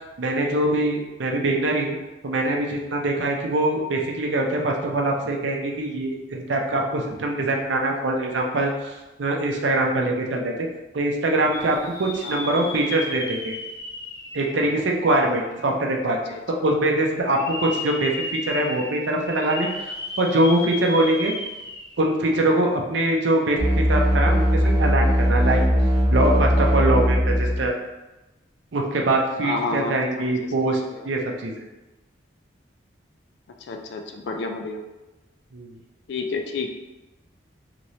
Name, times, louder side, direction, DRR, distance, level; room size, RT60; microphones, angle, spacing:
voice 1, 0.2-1.9 2.2-10.7 10.9-13.6 14.3-19.7 20.2-21.3 22.0-25.6 26.1-27.8 28.7-31.6 35.5-35.8, right 1 dB, 70° right, 1 dB, 0.5 m, -23 dB
sound 1, 11.5-15.5 16.0-16.1 17.2-22.1 22.5-22.6 24.5-24.7, left 2 dB, 20° left, 0.6 m, -35 dB
voice 2, 12.2-12.6 16.1-16.4 29.4-30.3 30.9-31.0 33.7-34.8 36.1-36.7, left 3 dB, 65° left, 3 dB, 0.3 m, -30 dB
sound 2, 23.6-27.7, equal, 10° right, 1.1 m, -19 dB
3.1 x 2.9 x 2.6 m, 1.1 s
head